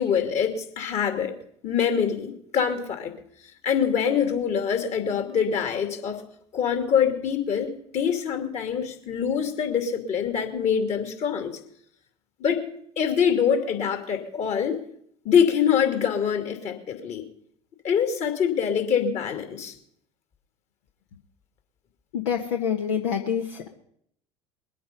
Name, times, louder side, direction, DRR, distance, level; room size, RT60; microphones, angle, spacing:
voice 1, 0.0-1.4 1.6-3.1 3.6-6.2 6.5-11.6 12.4-12.7 13.0-14.8 15.2-17.2 17.8-19.7, left 7 dB, 45° left, 6 dB, 2.6 m, -24 dB
voice 2, 22.1-23.7, left 7 dB, 75° left, 2 dB, 1.3 m, -26 dB
21.5 x 8.6 x 5.4 m, 0.69 s
hypercardioid pair, 70°, 16 cm